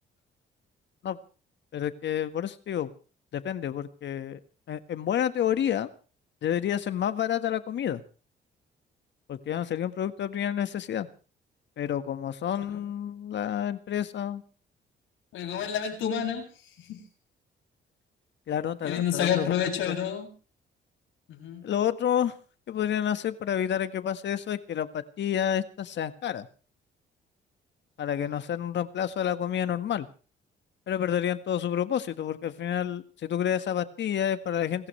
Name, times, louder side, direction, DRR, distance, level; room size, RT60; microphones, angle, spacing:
voice 1, 1.7-2.9 3.3-4.4 4.7-5.9 6.4-8.0 9.3-11.1 11.8-14.4 18.5-19.9 21.6-22.3 22.7-26.5 28.0-30.1 30.9-34.9, left 9 dB, 65° left, 11 dB, 1.6 m, -29 dB
voice 2, 15.3-16.5 16.9-17.0 18.8-20.3 21.3-21.6, left 8 dB, 80° left, 2 dB, 7.3 m, -29 dB
28.0 x 15.0 x 3.3 m, 0.38 s
cardioid pair, 90°, 20 cm